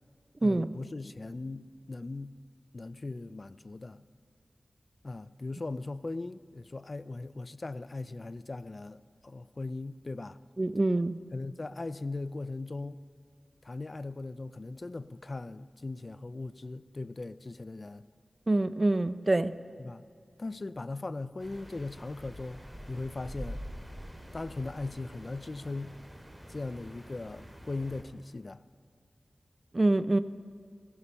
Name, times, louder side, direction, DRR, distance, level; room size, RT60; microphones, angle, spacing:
voice 1, 0.4-2.4 2.7-4.0 5.0-10.4 11.3-13.0 13.6-18.0 19.8-20.0 20.4-23.6 24.3-26.0 26.5-28.6, left 3 dB, 50° left, 0.4 m, -39 dB
voice 2, 10.6-11.2 18.5-19.5 29.7-30.2, right 2 dB, 40° right, 0.6 m, -25 dB
sound 1, 21.4-28.0, equal, 10° right, 2.8 m, -46 dB
16.0 x 15.5 x 5.6 m
wide cardioid pair, 55°, 0 cm